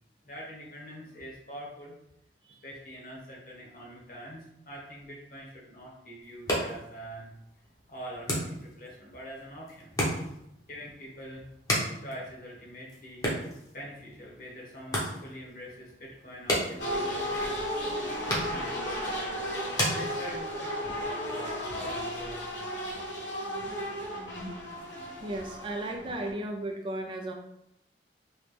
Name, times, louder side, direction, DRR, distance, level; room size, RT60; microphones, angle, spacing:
voice 1, 0.2-1.9 2.6-7.3 7.9-9.9 10.7-11.5 12.0-22.6 22.9-23.0, equal, 50° left, -4 dB, 1.1 m, -45 dB
sound 1, 6.2-20.7, equal, 20° left, 0.8 m, -36 dB
sound 2, 16.8-26.3, equal, 85° left, 1.3 m, -34 dB
voice 2, 25.2-27.3, right 1 dB, 30° right, 3 dB, 0.3 m, -35 dB
3.1 x 3.0 x 3.2 m, 0.79 s
head